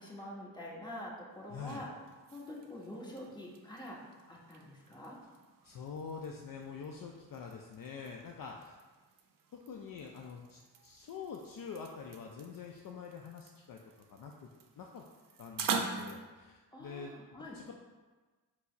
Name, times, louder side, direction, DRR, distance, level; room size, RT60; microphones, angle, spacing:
voice 1, 0.0-1.9 2.3-4.0 4.3-5.2 16.7-17.6, left 1 dB, 10° left, -4 dB, 1.2 m, -46 dB
sound 1, 1.3-16.2, right 5 dB, 50° right, 0.6 m, -45 dB
voice 2, 1.5-1.8 5.6-8.8 9.5-14.3 14.8-15.0 15.4-17.2 17.5-17.7, left 5 dB, 50° left, 1 dB, 0.5 m, -46 dB
4.4 x 2.1 x 4.4 m, 1.3 s
supercardioid pair, 45°, 42 cm